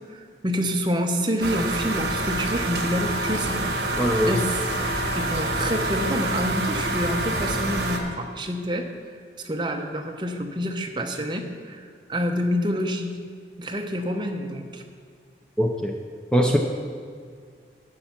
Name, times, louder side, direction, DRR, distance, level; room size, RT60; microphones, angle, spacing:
voice 1, 0.1-3.6 3.9-8.9 9.4-13.2 13.6-14.8, equal, 25° right, 4 dB, 0.8 m, -28 dB
sound 1, 1.4-8.0, right 2 dB, 60° right, 1.3 m, -27 dB
voice 2, 4.0-4.4 15.6-15.9 16.3-16.6, equal, 5° left, 1 dB, 0.5 m, -21 dB
9.9 x 8.0 x 5.8 m, 2.1 s
head